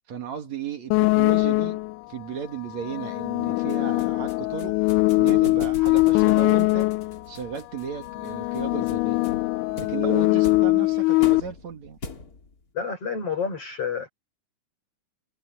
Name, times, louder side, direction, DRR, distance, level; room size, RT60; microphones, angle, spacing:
voice 1, 0.1-1.8 2.1-4.8 5.1-6.9 7.3-9.3 9.8-12.0, right 8 dB, 65° right, 3.2 m, -35 dB
sound 1, 0.9-2.0 2.8-7.2 8.0-11.4, left 22 dB, 85° left, 2.1 m, -22 dB
sound 2, 3.7-12.6, left 4 dB, 30° left, 2.6 m, -41 dB
voice 2, 12.7-14.1, left 6 dB, 50° left, 6.0 m, -29 dB
omnidirectional pair, 3.5 m